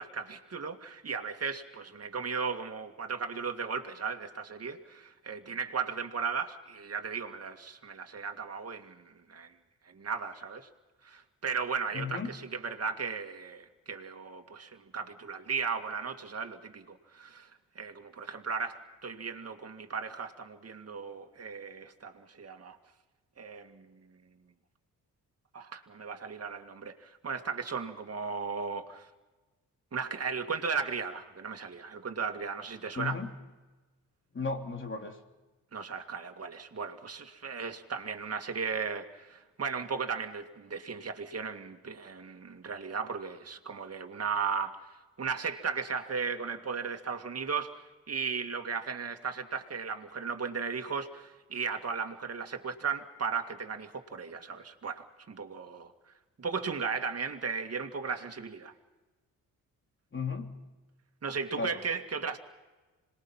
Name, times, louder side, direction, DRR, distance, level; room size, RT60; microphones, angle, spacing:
voice 1, 0.0-9.5 9.9-10.7 11.0-17.5 17.8-22.8 23.4-24.0 25.5-29.1 29.9-33.2 35.7-44.8 45.2-47.7 48.1-55.9 56.4-58.7 61.2-62.4, right 5 dB, 40° right, 5 dB, 2.2 m, -36 dB
voice 2, 11.9-12.3 32.9-33.3 34.3-35.2 60.1-60.5 61.6-61.8, left 4 dB, 35° left, 3 dB, 3.2 m, -34 dB
26.0 x 21.0 x 5.7 m, 1.2 s
cardioid pair, 60°, 36 cm